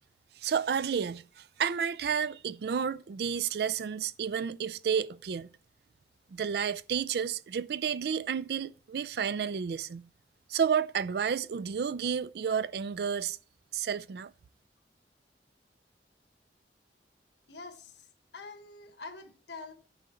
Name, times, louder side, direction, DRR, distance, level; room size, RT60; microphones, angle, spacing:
voice 1, 0.4-5.5 6.3-10.1 10.5-13.4 13.7-14.3, right 7 dB, 65° right, 0.4 m, -31 dB
voice 2, 17.5-19.7, left 3 dB, 80° left, 1.4 m, -46 dB
9.1 x 5.0 x 4.4 m
head